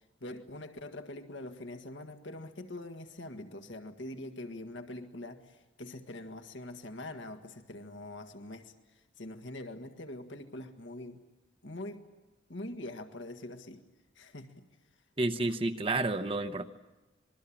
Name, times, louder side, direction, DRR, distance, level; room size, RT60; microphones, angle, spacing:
voice 1, 0.2-8.7 9.2-11.2 11.6-12.0 12.5-13.8 14.1-14.7, left 1 dB, 75° left, 6 dB, 1.8 m, -43 dB
voice 2, 15.2-16.6, right 2 dB, 30° right, 8 dB, 0.9 m, -30 dB
26.5 x 22.0 x 8.7 m, 1.1 s
head